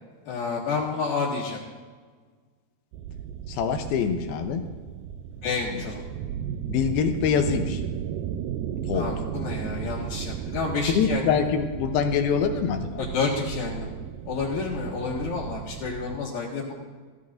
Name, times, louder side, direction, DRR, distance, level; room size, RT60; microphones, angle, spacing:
voice 1, 0.2-1.6 5.4-6.0 8.9-11.4 13.0-13.9 14.3-16.7, left 4 dB, 55° left, -6 dB, 2.9 m, -29 dB
sound 1, 2.9-16.2, right 9 dB, 90° right, 2.0 m, -35 dB
voice 2, 3.5-4.7 5.7-5.8 6.7-7.8 8.9-9.1 9.8-10.0 10.9-13.0, left 6 dB, 80° left, 6 dB, 2.5 m, -25 dB
15.5 x 15.5 x 2.6 m, 1.5 s
omnidirectional pair, 4.6 m